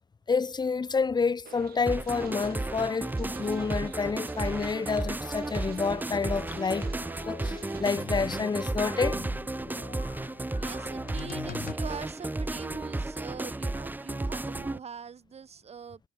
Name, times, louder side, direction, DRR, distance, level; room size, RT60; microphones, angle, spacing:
voice 1, 0.3-6.9 7.3-9.2, left 5 dB, 25° left, 1.7 m, -29 dB
sound 1, 1.5-8.0, right 12 dB, 65° right, 2.9 m, -49 dB
sound 2, 1.9-14.8, right 2 dB, 10° right, 2.4 m, -33 dB
sound 3, 6.2-11.7, left 11 dB, 60° left, 3.2 m, -45 dB
voice 2, 10.6-16.0, right 6 dB, 40° right, 7.4 m, -43 dB
cardioid pair, 110°, 17 cm